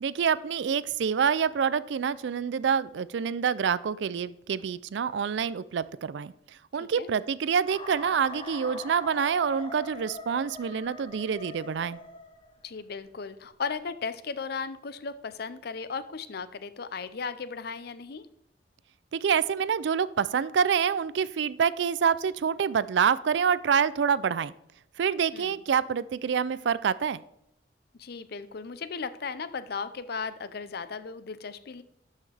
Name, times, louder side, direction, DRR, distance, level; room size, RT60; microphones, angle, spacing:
voice 1, 0.0-6.3 6.7-12.0 19.1-24.5 25.0-27.2, right 7 dB, 75° right, 18 dB, 0.4 m, -27 dB
sound 1, 7.7-12.6, left 2 dB, 30° left, 0.9 m, -42 dB
voice 2, 12.6-18.3 25.3-25.6 28.0-31.8, left 5 dB, 60° left, 14 dB, 0.6 m, -36 dB
12.5 x 5.6 x 3.3 m, 0.81 s
head